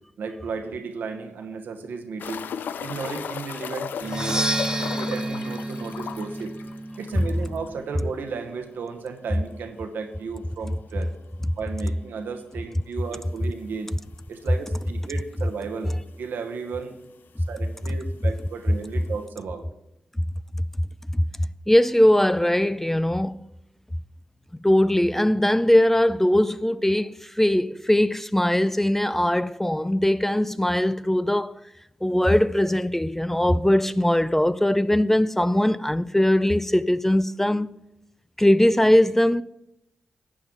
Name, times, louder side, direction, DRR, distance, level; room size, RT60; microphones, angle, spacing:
voice 1, 0.2-2.5 2.8-4.4 4.8-6.5 7.0-11.1 11.6-13.9 14.3-16.9 17.5-19.6, right 5 dB, 75° right, 1.1 m, -34 dB
sound 1, 2.2-7.6 7.9-8.0 8.3-8.4 11.2-11.3 13.0-13.1 13.8-13.9 14.2-14.3 15.2-15.3 15.4-16.0 17.0-17.1, left 7 dB, 75° left, 0.4 m, -36 dB
Percussion, 4.0-7.8, right 1 dB, 20° right, 1.1 m, -30 dB
voice 2, 21.7-23.4 24.6-31.5 32.0-37.7 38.4-39.4, left 1 dB, 10° left, 0.4 m, -20 dB
11.5 x 8.6 x 3.9 m
supercardioid pair, 40°, 3 cm